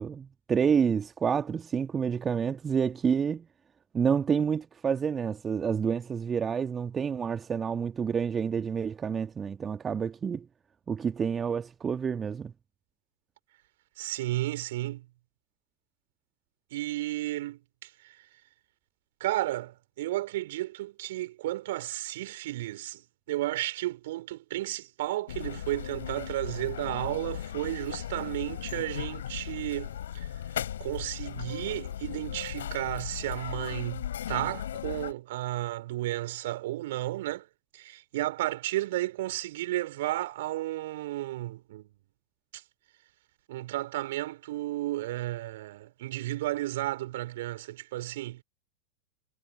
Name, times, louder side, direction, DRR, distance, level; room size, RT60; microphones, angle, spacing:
voice 1, 0.0-3.4 3.9-10.5 10.9-12.5, right 6 dB, 20° right, 1.7 m, -28 dB
voice 2, 14.0-15.0 16.7-17.6 19.2-23.0 23.3-29.9 30.1-30.3 30.8-37.4 37.7-41.9 43.5-48.4, right 16 dB, 55° right, 5.0 m, -33 dB
sound 1, 25.3-35.1, left 10 dB, 60° left, 5.6 m, -37 dB
figure-of-eight pair, 90°, 0 cm